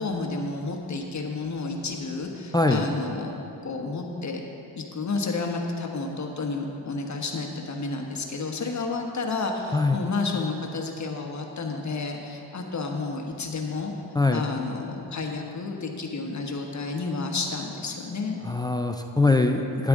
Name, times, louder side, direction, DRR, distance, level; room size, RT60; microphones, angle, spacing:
voice 1, 0.0-3.4 3.6-4.4 4.8-13.9 14.3-18.4, left 3 dB, 40° left, 2 dB, 1.2 m, -31 dB
voice 2, 2.5-2.9 9.7-10.0 14.1-14.4 18.4-19.9, left 3 dB, 10° left, 5 dB, 0.4 m, -22 dB
12.5 x 9.6 x 3.7 m, 2.8 s
cardioid pair, 115°, 45 cm